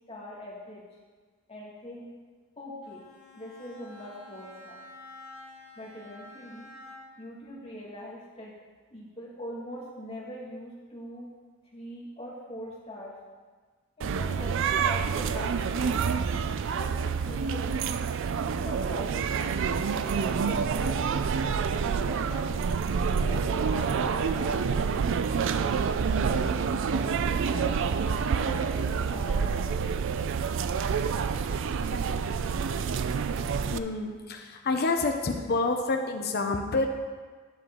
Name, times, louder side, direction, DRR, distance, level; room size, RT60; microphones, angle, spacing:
voice 1, 0.1-0.8 1.5-2.1 2.6-3.1 3.3-4.8 5.8-6.7 7.2-8.5 8.9-11.3 11.7-13.1 14.0-16.0 16.6-17.8 18.6-19.6 20.0-21.2 22.0-22.8 23.1-25.7 26.1-30.0, left 1 dB, 30° left, -4 dB, 2.0 m, -42 dB
Bowed string instrument, 2.8-7.3, left 2 dB, 85° right, 1.9 m, -49 dB
sound 1, 14.0-33.8, right 6 dB, 65° right, 0.4 m, -28 dB
voice 2, 33.7-36.9, left 3 dB, 50° left, 3 dB, 0.7 m, -28 dB
11.0 x 6.9 x 3.7 m, 1.5 s
head